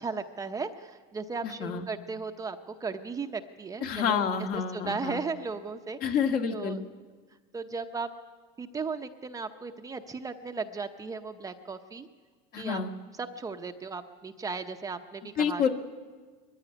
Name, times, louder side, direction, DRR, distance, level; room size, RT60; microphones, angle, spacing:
voice 1, 0.0-4.2 4.5-6.0 6.5-6.8 7.5-8.1 8.6-12.1 12.6-12.8 13.2-15.7, right 4 dB, 15° right, 6 dB, 0.8 m, -36 dB
voice 2, 1.4-1.8 3.8-5.2 6.0-6.8 12.5-12.9 15.4-15.7, left 7 dB, 45° left, 5 dB, 1.8 m, -28 dB
21.5 x 15.0 x 9.8 m, 1.5 s
supercardioid pair, 140°, 20 cm